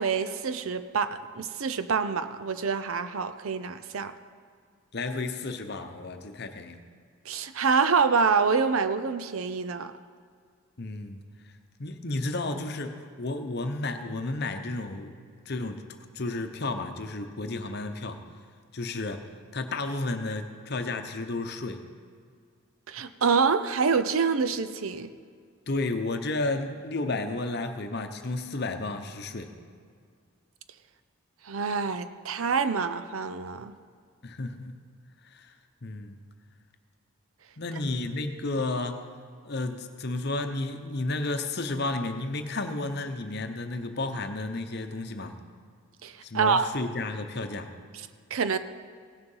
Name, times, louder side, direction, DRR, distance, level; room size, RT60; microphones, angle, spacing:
voice 1, 0.0-4.1 7.3-9.9 22.9-25.1 31.4-33.7 46.0-46.7 48.3-48.6, right 5 dB, 75° right, 11 dB, 0.6 m, -26 dB
voice 2, 4.9-6.8 10.8-11.2 11.8-15.1 15.5-15.8 16.1-18.2 18.7-21.8 25.7-29.5 34.2-34.8 35.2-35.5 35.8-36.2 37.6-39.1 39.4-45.3 46.2-47.7, left 2 dB, 50° left, 7 dB, 0.8 m, -32 dB
17.0 x 6.8 x 5.5 m, 2.1 s
head